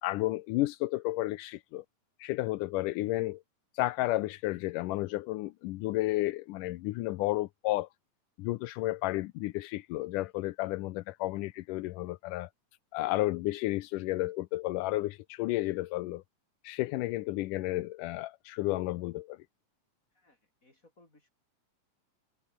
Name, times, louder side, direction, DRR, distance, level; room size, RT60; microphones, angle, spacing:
voice 1, 0.0-1.8 2.2-3.4 3.7-7.9 8.4-12.5 12.9-16.2 16.6-19.4, left 18 dB, 85° left, 2.3 m, -32 dB
voice 2, 20.1-21.3, left 2 dB, 25° left, 7.9 m, -64 dB
omnidirectional pair, 3.7 m